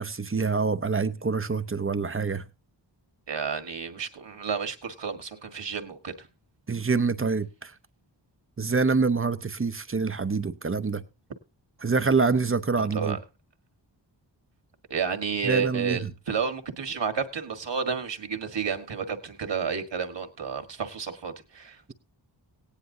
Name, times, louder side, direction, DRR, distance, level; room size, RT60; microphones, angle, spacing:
voice 1, 0.0-2.4 6.7-7.7 8.6-11.0 11.8-13.2 15.4-16.1, right 4 dB, 30° right, 0.7 m, -26 dB
voice 2, 3.3-6.3 12.8-13.2 14.9-21.9, right 6 dB, 65° right, 1.7 m, -31 dB
18.0 x 9.9 x 2.7 m
wide cardioid pair, 90°, 46 cm